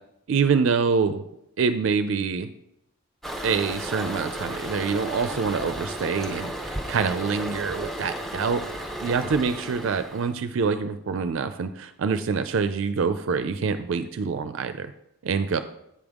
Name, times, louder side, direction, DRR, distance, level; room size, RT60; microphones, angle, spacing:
voice 1, 0.3-1.2 1.6-2.5 3.4-8.6 9.0-14.9 15.2-15.6, right 5 dB, 65° right, 10 dB, 0.4 m, -25 dB
Toilet flush, 3.2-10.3, right 1 dB, ahead, 0.6 m, -34 dB
8.5 x 5.2 x 3.6 m, 0.79 s
head